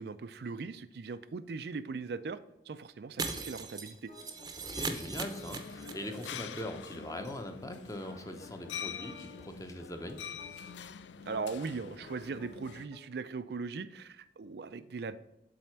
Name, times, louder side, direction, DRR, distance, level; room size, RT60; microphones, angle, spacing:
voice 1, 0.0-2.4 2.7-4.1 11.3-15.2, right 4 dB, 60° right, 12 dB, 0.4 m, -39 dB
Shatter, 3.2-6.3 6.5-6.6 6.9-7.0, right 4 dB, 20° right, 0.7 m, -39 dB
sound 1, 4.1-10.7 11.2-13.0, left 1 dB, 45° left, 1.5 m, -53 dB
voice 2, 4.6-10.2, left 1 dB, 20° left, 6 dB, 0.8 m, -41 dB
sound 2, 5.3-12.9, left 7 dB, 80° left, 0.4 m, -45 dB
7.7 x 4.2 x 5.8 m, 0.86 s
head